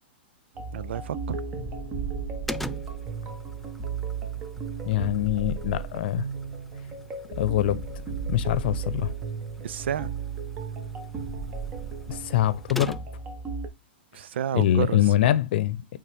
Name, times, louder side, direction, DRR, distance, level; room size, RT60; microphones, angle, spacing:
sound 1, 0.5-13.7, right 5 dB, 25° right, 1.4 m, -35 dB
voice 1, 0.7-1.5 9.6-10.1 14.1-15.0, right 10 dB, 75° right, 0.4 m, -30 dB
sound 2, 2.5-13.4, left 1 dB, ahead, 0.3 m, -44 dB
voice 2, 4.8-6.2 7.4-7.8 8.3-9.1 12.1-13.0 14.5-16.0, left 12 dB, 60° left, 0.8 m, -24 dB
8.5 x 3.5 x 3.5 m
hypercardioid pair, 135°, 6 cm